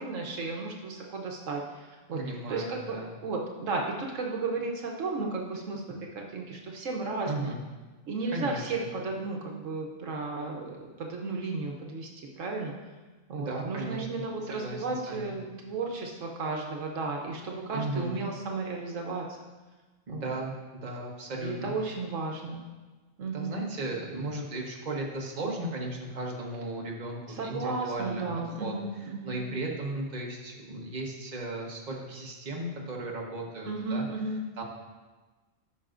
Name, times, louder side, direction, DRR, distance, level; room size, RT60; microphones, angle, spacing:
voice 1, 0.0-1.6 2.1-2.2 2.5-3.0 3.2-5.8 6.1-7.5 8.1-12.1 12.4-12.7 13.3-19.2 20.1-20.2 21.4-22.6 23.2-23.6 27.3-29.4 33.7-34.4, right 3 dB, 75° right, 1 dB, 1.3 m, -34 dB
voice 2, 2.1-3.1 7.2-7.6 8.3-8.7 13.4-14.1 14.5-15.3 17.7-18.1 20.1-21.7 23.3-34.1 34.6-34.7, right 2 dB, 35° right, -1 dB, 1.3 m, -36 dB
14.0 x 6.1 x 2.6 m, 1.3 s
omnidirectional pair, 1.3 m